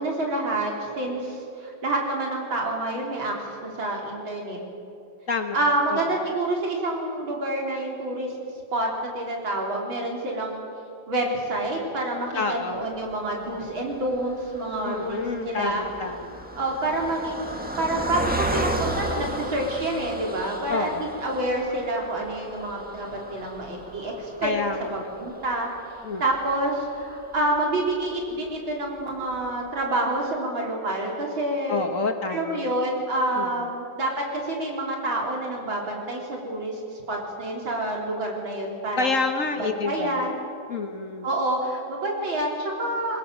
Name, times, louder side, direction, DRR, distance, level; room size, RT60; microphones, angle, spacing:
voice 1, 0.0-3.3 3.6-4.6 5.5-8.3 8.7-10.6 11.1-15.8 16.6-24.5 24.9-25.7 26.2-31.9 32.3-36.8 37.1-39.1 39.6-40.4 41.2-43.2, right 1 dB, 80° right, -1 dB, 4.4 m, -28 dB
voice 2, 5.3-6.0 12.3-12.9 14.8-16.4 20.7-21.2 24.4-25.3 26.0-26.2 31.7-32.8 33.4-33.7 39.0-40.3 40.7-41.3, left 4 dB, 45° left, 6 dB, 1.4 m, -29 dB
Car passing by, 13.0-28.5 29.0-29.1 29.3-29.5, right 1 dB, 5° right, 1.6 m, -35 dB
22.0 x 20.5 x 7.6 m, 2.6 s
omnidirectional pair, 2.1 m